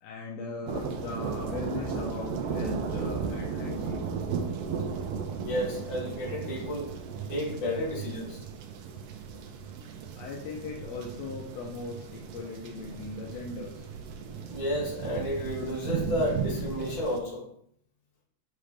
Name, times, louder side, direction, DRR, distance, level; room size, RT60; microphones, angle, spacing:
voice 1, 0.0-4.1 10.2-13.9, left 4 dB, 70° left, -1 dB, 1.7 m, -39 dB
sound 1, 0.7-17.2, right 6 dB, 80° right, 1.4 m, -35 dB
voice 2, 5.4-6.9 7.3-8.4 14.5-17.5, equal, 50° left, -4 dB, 3.4 m, -31 dB
6.7 x 5.1 x 3.3 m, 0.65 s
omnidirectional pair, 3.7 m